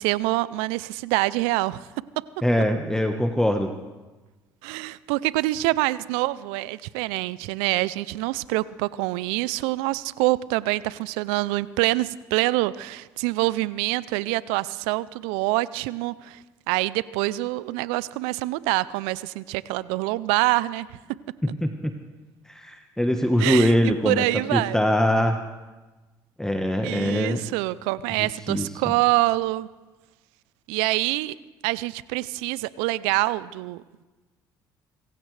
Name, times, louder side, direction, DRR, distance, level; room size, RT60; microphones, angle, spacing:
voice 1, 0.0-1.9 4.6-20.9 23.4-24.8 26.8-29.7 30.7-31.4 31.6-34.0, right 19 dB, 80° right, 19 dB, 0.4 m, -25 dB
voice 2, 2.4-3.7 21.4-22.0 22.5-24.2 24.5-25.4 26.4-27.4 28.2-28.7, left 1 dB, 5° left, 5 dB, 1.2 m, -23 dB
23.5 x 15.5 x 3.3 m, 1.2 s
hypercardioid pair, 65°, 9 cm